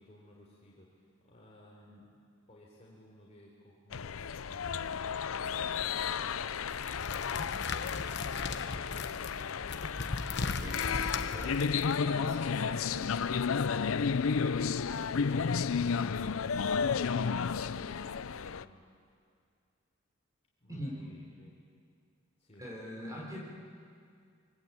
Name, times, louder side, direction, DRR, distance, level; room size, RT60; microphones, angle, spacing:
voice 1, 0.0-2.1 2.5-11.4 15.0-16.3 16.7-18.9 20.6-21.5 22.4-22.6, left 1 dB, 35° left, -4 dB, 3.7 m, -57 dB
sound 1, 3.9-18.6, left 6 dB, 80° left, 0.6 m, -32 dB
sound 2, 6.7-12.0, left 4 dB, 55° left, 1.1 m, -38 dB
voice 2, 10.3-11.5 11.9-13.1 15.2-15.4 20.7-20.9 22.6-23.4, equal, 15° right, -2 dB, 4.8 m, -43 dB
25.5 x 23.5 x 8.7 m, 2.2 s
head